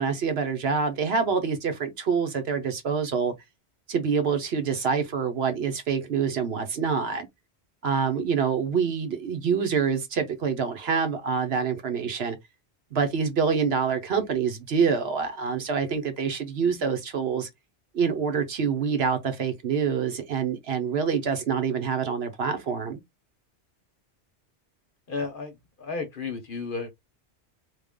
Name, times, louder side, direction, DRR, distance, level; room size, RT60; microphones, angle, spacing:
voice 1, 0.0-3.3 3.9-7.3 7.8-12.4 12.9-17.5 17.9-23.0, right 6 dB, 65° right, 1.1 m, -26 dB
voice 2, 25.1-26.9, left 4 dB, 55° left, 0.9 m, -33 dB
3.3 x 2.4 x 3.6 m
omnidirectional pair, 1.2 m